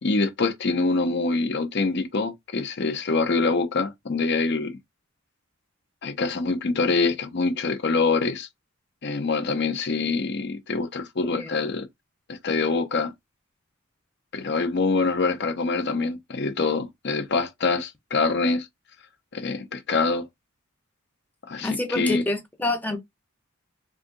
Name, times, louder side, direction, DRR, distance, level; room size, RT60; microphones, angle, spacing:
voice 1, 0.0-4.7 6.0-8.5 9.0-11.9 12.3-13.1 14.3-18.7 19.3-20.3 21.5-22.3, left 3 dB, 50° left, 0.6 m, -25 dB
voice 2, 21.6-23.0, left 2 dB, 10° left, 0.6 m, -27 dB
2.6 x 2.4 x 3.7 m
head